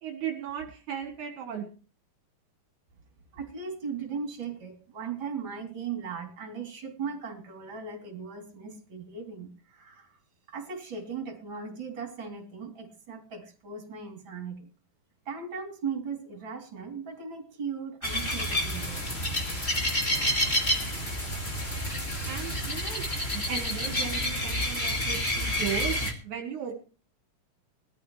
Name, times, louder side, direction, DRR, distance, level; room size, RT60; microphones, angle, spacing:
voice 1, 0.0-1.7 22.3-23.0 23.3-26.7, right 8 dB, 65° right, 3 dB, 2.7 m, -36 dB
voice 2, 3.3-10.2 10.5-14.7 15.3-19.1, right 5 dB, 35° right, 3 dB, 3.7 m, -38 dB
sound 1, 18.0-26.1, left 1 dB, 20° left, 2.4 m, -29 dB
20.0 x 13.5 x 3.2 m, 0.36 s
omnidirectional pair, 3.9 m